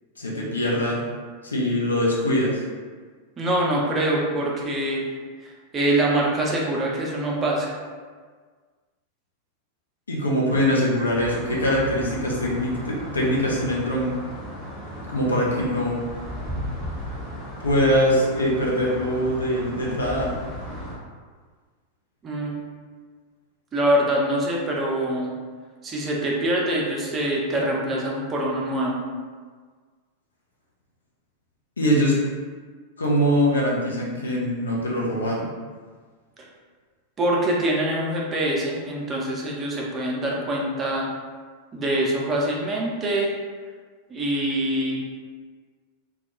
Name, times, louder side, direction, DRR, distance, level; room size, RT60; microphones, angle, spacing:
voice 1, 0.2-1.0 1.4-2.6 10.1-14.2 15.1-16.0 17.6-20.3 31.8-32.2 33.0-35.5, equal, 75° left, -4 dB, 0.5 m, -23 dB
voice 2, 3.4-5.0 5.4-7.7 22.2-22.6 23.7-25.3 25.8-29.0 37.2-41.1 41.7-43.3 44.1-45.0, right 1 dB, 25° right, -3 dB, 0.5 m, -24 dB
sound 1, 11.1-20.9, equal, 25° left, 0.7 m, -36 dB
2.2 x 2.2 x 2.9 m, 1.5 s
figure-of-eight pair, 90°, 0 cm